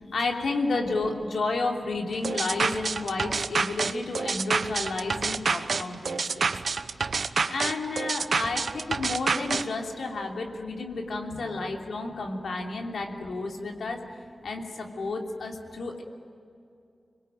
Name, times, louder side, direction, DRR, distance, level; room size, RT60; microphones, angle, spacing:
voice 1, 0.1-6.6 7.1-14.0 14.4-16.0, left 3 dB, 90° left, 1 dB, 3.1 m, -31 dB
sound 1, 2.2-9.6, right 4 dB, 65° right, 0.9 m, -28 dB
voice 2, 6.1-7.5 11.4-11.8 15.7-15.8, left 2 dB, 35° left, 5 dB, 1.9 m, -57 dB
26.5 x 22.0 x 9.2 m, 2.5 s
wide cardioid pair, 95°, 0 cm